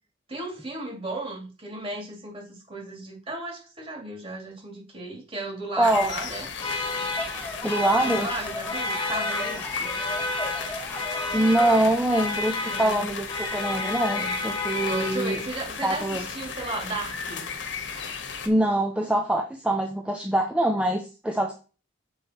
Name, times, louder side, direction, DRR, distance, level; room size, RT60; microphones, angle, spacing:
voice 1, 0.3-6.5 8.0-9.9 12.7-13.0 14.1-14.4 14.8-17.5, right 2 dB, 30° right, 1 dB, 2.4 m, -35 dB
sound 1, 5.8-18.5, left 5 dB, 70° left, 1.2 m, -35 dB
voice 2, 5.8-6.1 7.6-8.3 11.3-15.4 15.8-16.3 18.4-21.6, right 1 dB, 5° right, 3 dB, 0.6 m, -24 dB
sound 2, 6.6-15.6, left 2 dB, 30° left, 1.5 m, -32 dB
sound 3, 6.9-11.9, left 2 dB, 10° left, 1.4 m, -37 dB
7.2 x 5.0 x 4.3 m, 0.34 s
head